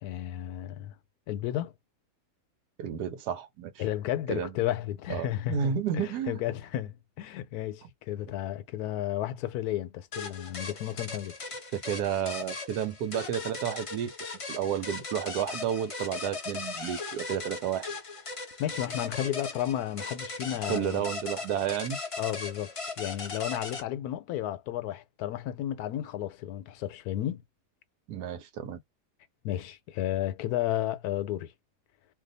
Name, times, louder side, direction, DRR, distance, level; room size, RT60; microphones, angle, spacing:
voice 1, 0.0-0.9 1.3-1.7 3.8-11.6 18.6-21.0 22.2-27.4 29.4-31.5, left 12 dB, 80° left, 1.1 m, -33 dB
voice 2, 2.8-3.8 4.3-4.5 5.1-6.4 7.8-7.9 11.7-14.1 14.5-17.9 20.7-22.0 28.1-28.8, right 9 dB, 85° right, 1.2 m, -31 dB
sound 1, 10.1-23.8, left 4 dB, 55° left, 0.3 m, -38 dB
2.7 x 2.3 x 3.9 m
omnidirectional pair, 1.7 m